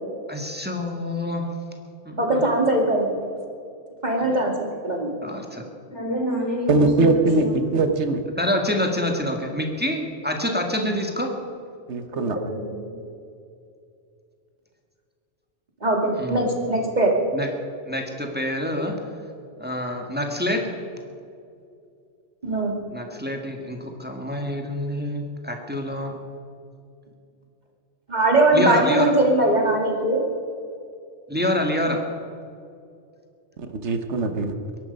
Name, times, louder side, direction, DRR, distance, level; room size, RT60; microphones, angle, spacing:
voice 1, 0.3-1.5 2.0-2.4 4.2-4.3 5.2-5.6 8.4-11.3 16.2-16.4 17.3-17.5 17.8-18.9 19.6-20.6 22.9-26.1 28.5-29.1 31.3-32.0, left 1 dB, 10° right, 2 dB, 1.8 m, -26 dB
voice 2, 2.2-3.2 4.0-5.1 15.8-17.1 22.4-22.7 28.1-30.2, right 2 dB, 40° right, 1 dB, 2.4 m, -20 dB
voice 3, 5.9-7.6 12.1-12.7, equal, 80° left, -4 dB, 5.6 m, -28 dB
voice 4, 6.7-8.2 11.9-12.4 33.7-34.5, right 2 dB, 75° right, 7 dB, 1.5 m, -21 dB
22.0 x 11.5 x 5.4 m, 2.5 s
omnidirectional pair, 1.2 m